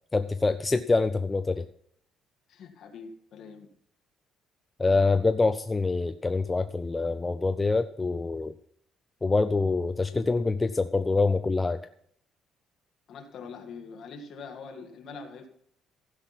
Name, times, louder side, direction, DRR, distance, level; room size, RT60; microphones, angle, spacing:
voice 1, 0.1-1.7 4.8-8.5 9.2-11.8, left 3 dB, 15° left, 9 dB, 0.3 m, -25 dB
voice 2, 2.5-3.7 13.1-15.5, left 5 dB, 50° left, 3 dB, 1.8 m, -43 dB
15.5 x 5.9 x 5.8 m, 0.68 s
cardioid pair, 170°, 0 cm